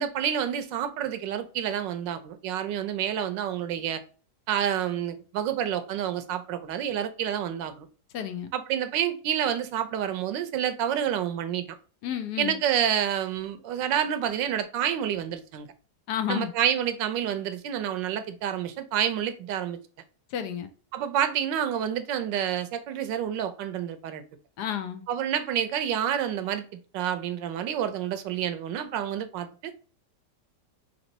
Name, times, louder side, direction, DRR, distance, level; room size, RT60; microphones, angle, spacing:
voice 1, 0.0-4.0 4.5-7.9 8.5-11.8 12.4-15.7 16.3-19.8 20.9-24.2 25.1-26.6 26.9-29.7, right 9 dB, 90° right, 1.3 m, -28 dB
voice 2, 8.1-8.5 12.0-12.6 16.1-16.5 20.3-20.7 24.6-25.0, left 10 dB, 70° left, 1.2 m, -31 dB
4.2 x 3.0 x 2.7 m
omnidirectional pair, 1.9 m